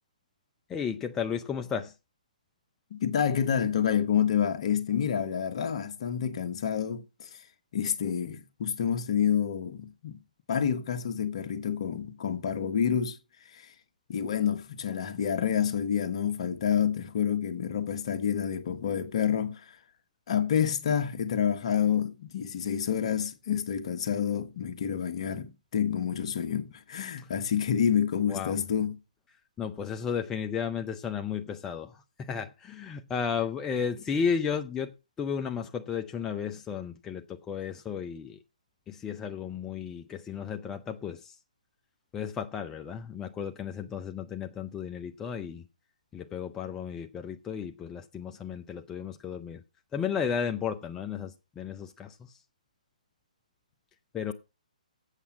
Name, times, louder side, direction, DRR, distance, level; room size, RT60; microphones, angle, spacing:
voice 1, 0.7-1.9 27.2-27.3 28.3-28.6 29.6-38.4 38.9-41.4 42.1-45.6 46.1-49.6 49.9-52.4 54.1-54.3, left 7 dB, 15° left, 0.6 m, -34 dB
voice 2, 2.9-7.4 7.7-10.2 10.5-13.2 13.4-13.7 14.1-19.8 20.3-29.0, left 8 dB, 45° left, 1.3 m, -28 dB
8.2 x 7.0 x 7.2 m
figure-of-eight pair, 135°, 4 cm